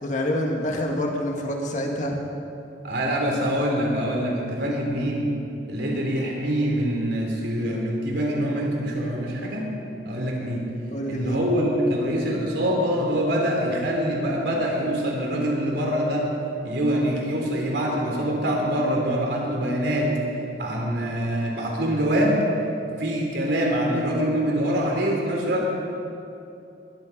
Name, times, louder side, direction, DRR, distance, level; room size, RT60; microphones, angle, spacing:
voice 1, 0.0-2.2 4.6-4.9 10.9-11.4, left 1 dB, 45° left, 1 dB, 2.0 m, -27 dB
voice 2, 2.8-5.3 5.7-9.7 10.1-10.7 11.1-16.3 16.6-20.1 20.6-22.4 23.0-25.6, equal, 75° right, -1 dB, 3.7 m, -24 dB
21.0 x 12.0 x 5.3 m, 2.7 s
head